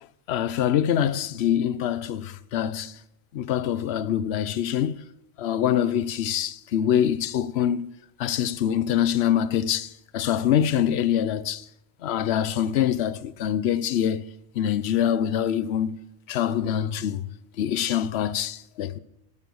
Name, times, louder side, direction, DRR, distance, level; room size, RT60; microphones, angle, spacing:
voice 1, 0.3-3.0 3.3-5.0 5.4-7.9 8.2-11.7 12.0-17.3 17.6-19.0, left 10 dB, 65° left, 0.9 m, -25 dB
12.0 x 11.0 x 6.3 m
omnidirectional pair, 1.2 m